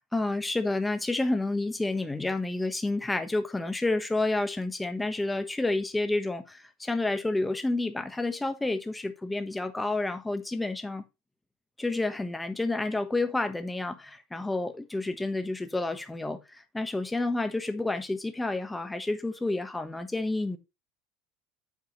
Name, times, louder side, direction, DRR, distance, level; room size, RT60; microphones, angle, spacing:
voice 1, 0.1-11.0 11.8-20.6, left 2 dB, 10° left, 1.2 m, -30 dB
8.3 x 4.7 x 4.6 m
supercardioid pair, 120°, 0 cm